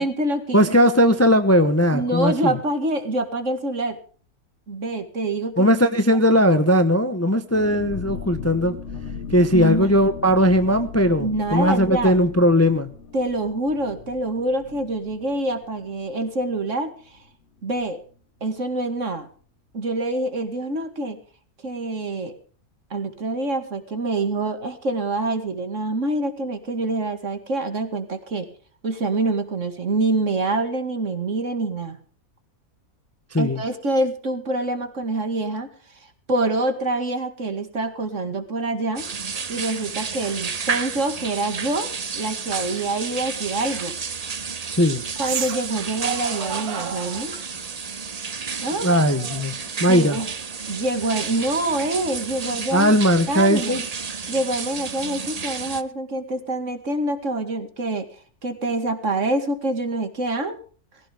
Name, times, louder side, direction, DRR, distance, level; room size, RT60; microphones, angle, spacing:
voice 1, 0.0-0.7 1.9-4.0 4.7-5.7 9.5-9.9 11.2-12.1 13.1-17.2 17.6-18.0 18.4-19.3 19.7-21.2 21.6-22.3 22.9-28.5 28.8-32.0 33.4-35.7 36.3-39.1 39.5-43.9 45.2-47.4 48.6-48.9 49.8-50.3 50.7-52.9 53.3-53.8 54.3-58.1 58.4-60.6, right 2 dB, 55° right, 8 dB, 2.5 m, -26 dB
voice 2, 0.5-2.6 5.6-8.8 9.3-12.9 33.3-33.6 44.7-45.0 48.8-50.2 52.7-53.8, equal, 10° left, 9 dB, 0.9 m, -18 dB
sound 1, 7.5-16.9 17.2-17.3 17.6-17.9, left 5 dB, 55° left, 1.4 m, -37 dB
sound 2, 39.0-55.8, right 5 dB, 35° right, 0.7 m, -31 dB
sound 3, 43.4-43.6 45.2-45.7 46.0-47.3 49.0-50.5, right 8 dB, 85° right, 1.8 m, -33 dB
19.5 x 16.5 x 3.5 m, 0.42 s
omnidirectional pair, 1.6 m